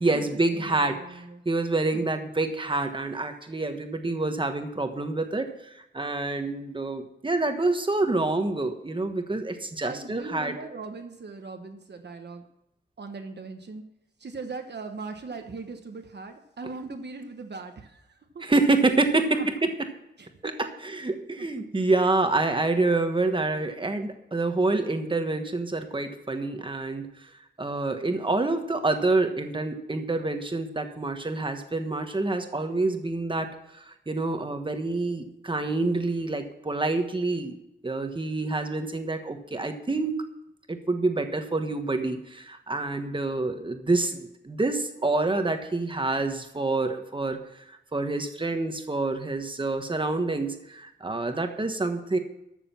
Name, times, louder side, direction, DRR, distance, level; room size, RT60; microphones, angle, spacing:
voice 1, 0.0-1.0 1.4-10.5 18.4-19.6 20.6-27.1 27.6-37.6 37.8-40.1 40.7-47.4 47.9-52.2, right 2 dB, 25° right, 6 dB, 1.3 m, -27 dB
voice 2, 0.5-1.4 1.9-2.0 9.8-12.4 13.0-13.9 14.2-18.5 19.1-19.5 20.2-20.7 21.6-21.7, right 3 dB, 65° right, 5 dB, 1.2 m, -39 dB
13.5 x 6.9 x 7.1 m, 0.85 s
wide cardioid pair, 130°, 19 cm